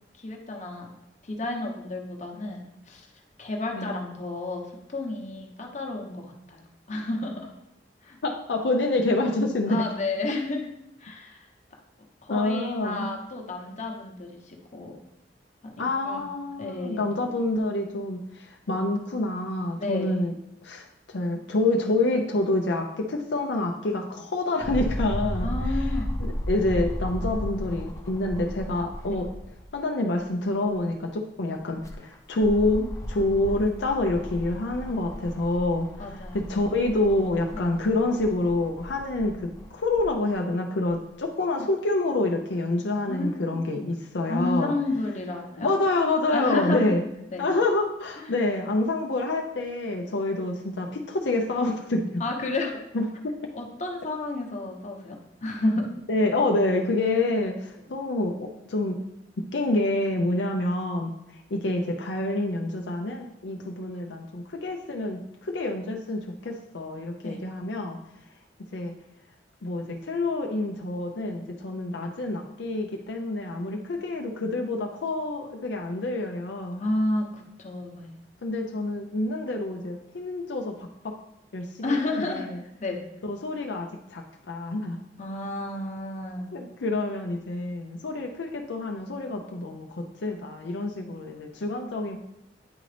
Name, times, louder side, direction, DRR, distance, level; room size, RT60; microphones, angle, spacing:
voice 1, 0.2-0.9 1.2-3.1 3.4-7.5 8.0-8.2 9.7-10.7 11.0-11.5 12.2-15.0 15.6-15.7 16.0-16.3 16.6-17.1 19.8-20.2 25.4-26.1 29.1-29.2 36.0-36.4 37.5-37.6 43.1-43.6 44.3-45.7 46.3-46.9 47.3-47.4 48.2-48.3 52.2-52.8 53.5-55.9 67.2-67.4 76.8-78.1 81.8-82.5 82.8-83.0 85.2-86.5, left 2 dB, 40° left, 1 dB, 1.0 m, -31 dB
voice 2, 8.2-9.9 12.3-13.1 15.8-20.3 20.6-25.5 26.2-29.3 29.7-44.7 45.6-47.1 47.4-52.2 52.9-53.4 56.1-59.0 59.4-68.0 68.7-68.9 69.6-76.8 78.4-81.1 81.5-82.6 83.2-85.0 86.5-92.2, left 2 dB, 75° left, 2 dB, 0.6 m, -27 dB
sound 1, 24.6-29.7 30.1-30.2 31.5-40.1 40.9-41.0, equal, 20° left, 0.7 m, -34 dB
9.6 x 3.8 x 3.3 m, 0.84 s
head